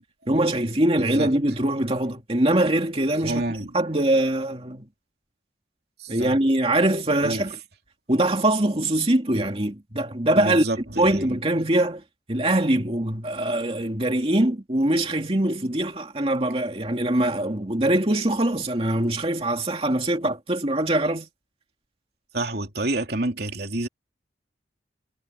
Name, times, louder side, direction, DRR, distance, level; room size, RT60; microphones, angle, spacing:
voice 1, 0.3-3.4 3.7-4.9 6.1-7.6 8.1-10.7 11.0-12.0 12.3-21.3, right 1 dB, 30° right, 2.6 m, -23 dB
voice 2, 1.0-1.3 3.2-3.7 6.0-6.4 7.2-7.5 10.4-11.3 22.3-23.9, right 2 dB, 55° right, 3.2 m, -29 dB
head